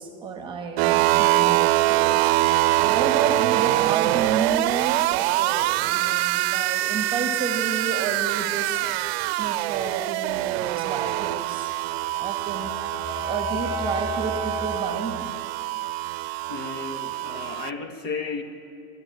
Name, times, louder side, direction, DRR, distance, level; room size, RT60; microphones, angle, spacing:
voice 1, 0.0-2.3 2.8-8.9 9.4-11.8 12.2-12.7 13.1-15.3, right 5 dB, 15° right, 6 dB, 1.2 m, -31 dB
sound 1, 0.8-17.7, right 17 dB, 70° right, 0.5 m, -24 dB
sound 2, 8.9-9.5 11.4-14.8, equal, 20° left, 6.1 m, -33 dB
voice 2, 16.5-18.4, left 4 dB, 70° left, 7 dB, 2.1 m, -33 dB
23.0 x 12.0 x 9.4 m, 2.6 s
supercardioid pair, 180°, 32 cm